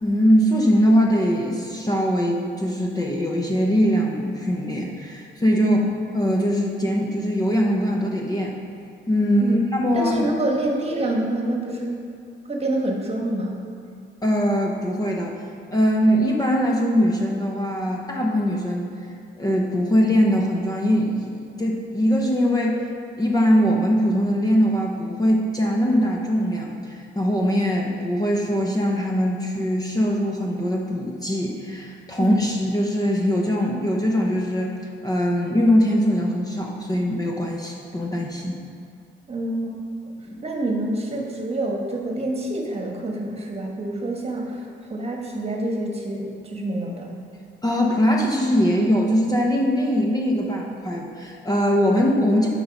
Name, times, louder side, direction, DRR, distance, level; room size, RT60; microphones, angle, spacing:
voice 1, 0.0-5.8 6.1-8.5 9.1-10.3 14.2-15.3 15.7-18.9 19.4-22.8 23.2-34.7 35.0-38.5 40.3-40.4 47.6-52.5, equal, 20° left, -1 dB, 0.8 m, -21 dB
voice 2, 9.9-12.0 12.5-13.6 32.2-32.4 39.3-39.8 40.4-47.1, right 1 dB, 30° right, 0 dB, 1.3 m, -27 dB
6.0 x 5.4 x 5.9 m, 2.3 s
cardioid pair, 90°, 20 cm